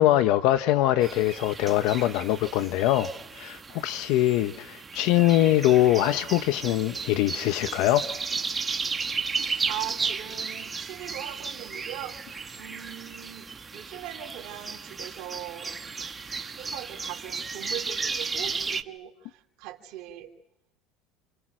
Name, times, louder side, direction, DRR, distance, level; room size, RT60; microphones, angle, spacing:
voice 1, 0.0-8.1, left 14 dB, 70° left, 11 dB, 1.0 m, -23 dB
sound 1, 1.0-18.8, right 5 dB, 20° right, 1.4 m, -34 dB
voice 2, 9.6-13.5 13.7-15.8 16.5-20.3, right 12 dB, 70° right, 1 dB, 2.9 m, -40 dB
29.5 x 27.0 x 6.3 m, 0.83 s
supercardioid pair, 115°, 0 cm